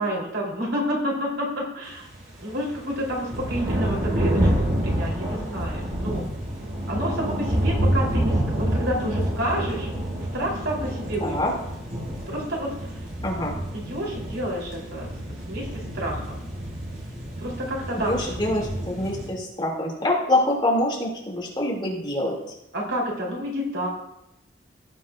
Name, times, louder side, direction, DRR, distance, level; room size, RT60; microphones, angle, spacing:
voice 1, 0.0-2.1 2.4-6.3 6.9-9.9 10.3-11.6 12.3-13.0 13.7-16.4 17.4-18.6 22.7-23.9, equal, 85° right, -3 dB, 3.6 m, -29 dB
sound 1, 1.9-19.3, right 1 dB, 50° right, 4.1 m, -28 dB
voice 2, 18.1-22.3, left 1 dB, 25° left, -3 dB, 2.5 m, -25 dB
17.0 x 7.4 x 2.5 m, 0.89 s
head